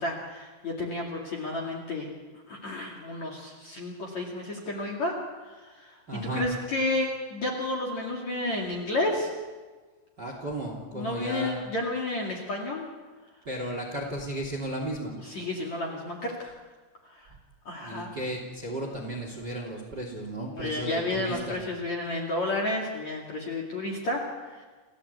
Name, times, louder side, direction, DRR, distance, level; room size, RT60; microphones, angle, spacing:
voice 1, 0.0-2.1 2.5-5.1 5.4-9.3 10.9-12.9 15.2-16.5 17.0-17.3 17.6-18.1 20.4-24.6, left 2 dB, 40° left, 1 dB, 3.0 m, -31 dB
voice 2, 6.1-6.4 10.2-11.6 13.4-15.2 17.8-21.6, right 1 dB, 25° right, 2 dB, 2.7 m, -34 dB
29.0 x 16.0 x 8.3 m, 1.3 s
omnidirectional pair, 6.0 m